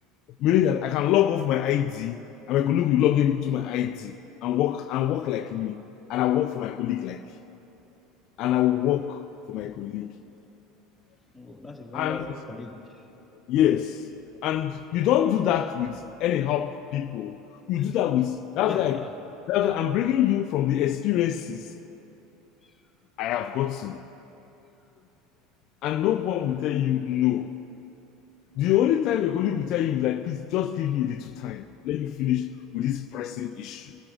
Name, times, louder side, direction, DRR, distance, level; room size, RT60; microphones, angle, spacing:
voice 1, 0.4-2.2 2.5-5.8 6.1-7.4 8.4-10.1 11.9-12.3 13.5-14.1 14.4-19.0 19.5-21.7 23.2-24.0 25.8-27.5 28.6-34.0, left 11 dB, 55° left, 0.4 m, -25 dB
voice 2, 11.3-13.1 17.8-17.9 18.6-19.1 22.6-22.8, left 2 dB, 10° left, 1.9 m, -40 dB
22.0 x 13.0 x 2.5 m
hypercardioid pair, 75°, 0 cm